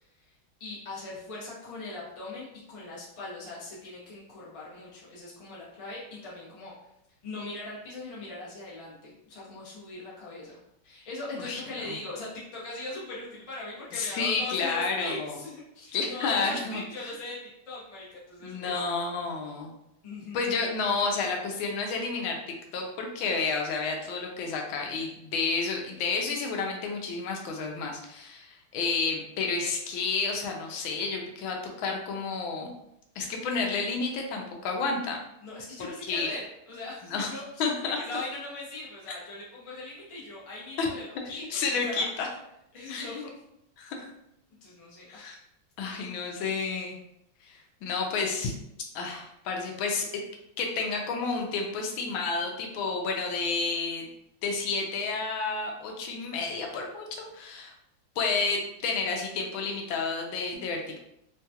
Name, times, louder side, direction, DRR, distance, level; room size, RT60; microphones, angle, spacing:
voice 1, 0.6-6.7 7.2-17.4 17.7-18.8 20.0-20.5 35.4-42.1 42.7-43.3 44.6-45.3, left 2 dB, 55° left, -6 dB, 0.3 m, -40 dB
voice 2, 11.4-12.0 13.9-15.4 15.9-17.1 18.4-19.7 20.3-32.7 33.2-35.2 36.0-36.3 37.1-37.3 37.6-38.0 40.8-40.9 41.5-42.3 42.9-43.2 43.8-44.1 45.1-45.4 45.8-47.0 47.4-48.5 48.9-50.1 50.6-54.1 54.4-57.0 57.3-57.7 58.2-61.0, left 4 dB, 75° left, 2 dB, 1.3 m, -30 dB
3.7 x 2.3 x 2.7 m, 0.80 s
omnidirectional pair, 2.3 m